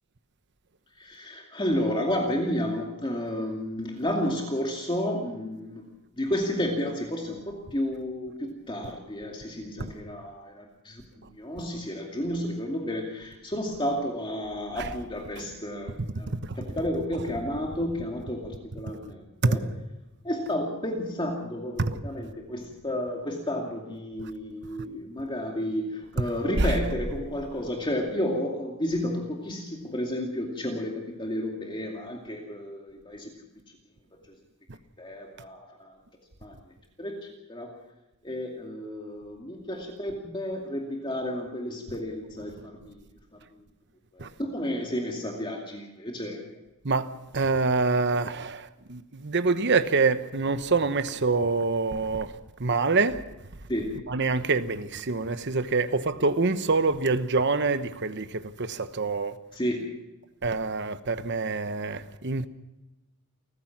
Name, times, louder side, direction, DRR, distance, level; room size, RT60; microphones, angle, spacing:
voice 1, 1.0-5.8 6.2-11.0 11.3-16.3 16.6-19.6 20.2-33.3 35.0-35.9 36.4-36.5 37.0-37.1 37.5-37.7 38.2-43.0 44.1-46.6 53.7-53.9 59.5-59.9, left 1 dB, 20° left, 2.4 m, -31 dB
voice 2, 46.8-52.3 52.6-53.2 54.1-59.3 60.4-62.5, right 3 dB, 55° right, 1.0 m, -26 dB
29.5 x 15.0 x 6.0 m
head